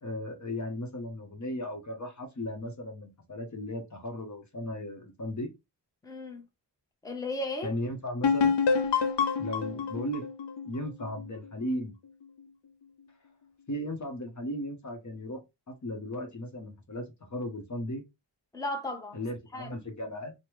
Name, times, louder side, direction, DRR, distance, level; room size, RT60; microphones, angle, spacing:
voice 1, 0.0-5.5 7.6-8.6 9.4-10.2 10.7-11.9 13.7-15.4 15.7-17.0 17.3-18.0 19.1-20.3, left 1 dB, 40° left, 1.0 m, -36 dB
voice 2, 6.0-6.5 7.0-7.7 18.5-19.2 19.5-19.7, left 2 dB, 10° left, 0.8 m, -35 dB
sound 1, 8.2-11.8, left 5 dB, 75° left, 0.6 m, -27 dB
3.3 x 2.2 x 2.9 m
cardioid pair, 65°, 43 cm